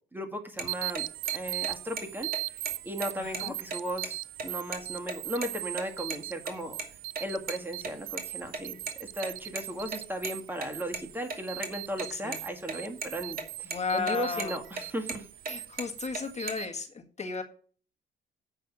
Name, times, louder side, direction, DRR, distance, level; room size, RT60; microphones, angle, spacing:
voice 1, 0.1-1.1 1.3-2.3 2.8-6.8 7.2-15.3, equal, 10° right, 3 dB, 1.9 m, -36 dB
sound 1, 0.6-0.7 0.9-1.0 1.3-1.4 1.6-2.0 2.3-2.4 2.6-2.7 3.0-4.1 4.4-4.5 4.7-4.8 5.1-5.5 5.8-6.2 6.5-7.5 7.8-10.3 10.6-12.4 12.7-12.8 13.0-13.4 13.7-14.1 14.4-15.5 15.8-16.5, right 4 dB, 45° right, 2.7 m, -36 dB
sound 2, 0.7-16.7, right 16 dB, 80° right, 0.5 m, -40 dB
voice 2, 3.1-3.5 12.1-12.4 13.6-14.6 15.5-17.4, left 5 dB, 35° left, 3 dB, 1.7 m, -34 dB
8.2 x 5.7 x 6.9 m, 0.43 s
cardioid pair, 90°, 20 cm